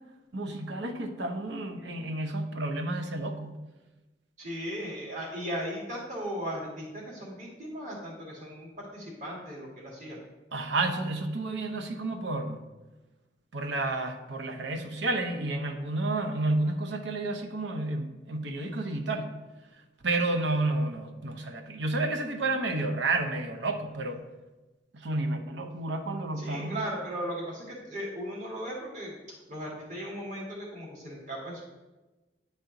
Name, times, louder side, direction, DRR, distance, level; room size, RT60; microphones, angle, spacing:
voice 1, 0.3-3.6 10.5-12.6 13.5-19.3 20.0-24.2 24.9-26.8, right 2 dB, 70° right, 5 dB, 0.8 m, -31 dB
voice 2, 4.4-10.2 26.4-29.2 29.5-31.6, equal, 40° right, -3 dB, 2.0 m, -37 dB
9.5 x 4.3 x 3.9 m, 1.1 s
head